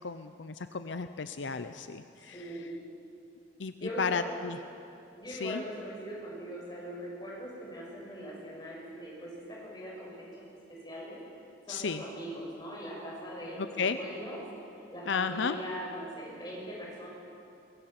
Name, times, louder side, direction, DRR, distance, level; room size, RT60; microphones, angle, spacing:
voice 1, 0.0-2.5 3.6-4.6 5.3-5.6 11.7-12.0 13.6-14.0 15.1-15.6, left 5 dB, 75° left, 10 dB, 0.6 m, -33 dB
voice 2, 2.2-2.8 3.8-4.4 5.2-10.4 10.7-11.2 11.7-14.4 14.9-17.1, equal, 20° left, -4 dB, 6.6 m, -41 dB
22.5 x 21.5 x 6.0 m, 2.7 s
head